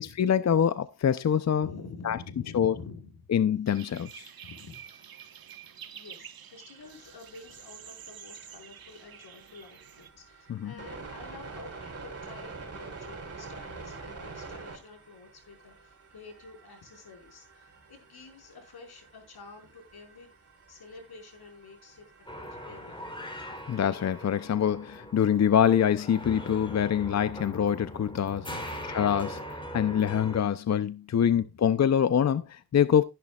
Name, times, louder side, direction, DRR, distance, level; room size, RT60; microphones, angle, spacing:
voice 1, 0.0-1.7 2.0-2.2 2.5-2.7 3.3-4.3 10.5-10.7 23.7-28.5 28.9-33.0, left 8 dB, 45° left, 0.6 m, -25 dB
voice 2, 1.6-3.1 4.4-4.9 5.9-20.3 20.7-23.4 28.4-29.0 31.2-31.4, left 4 dB, 85° left, 5.0 m, -48 dB
sound 1, 3.7-10.1, right 8 dB, 70° right, 1.2 m, -48 dB
sound 2, 6.8-24.4, right 4 dB, 40° right, 3.6 m, -47 dB
sound 3, 22.3-30.4, equal, 15° left, 3.2 m, -41 dB
14.0 x 10.5 x 2.4 m
wide cardioid pair, 110°, 37 cm